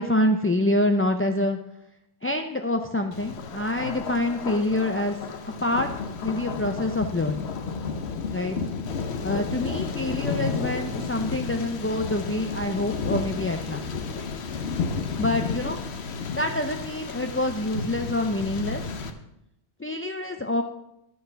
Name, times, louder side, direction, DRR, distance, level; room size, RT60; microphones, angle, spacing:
voice 1, 0.0-1.6 2.2-5.2 5.6-5.9 6.2-7.5 8.3-8.6 9.2-13.9 15.2-15.8 16.3-18.8 19.8-20.6, left 1 dB, 20° left, 4 dB, 0.3 m, -26 dB
Thunder, 3.1-19.1, left 5 dB, 75° left, 1.2 m, -32 dB
11.0 x 6.3 x 6.8 m, 0.81 s
omnidirectional pair, 1.1 m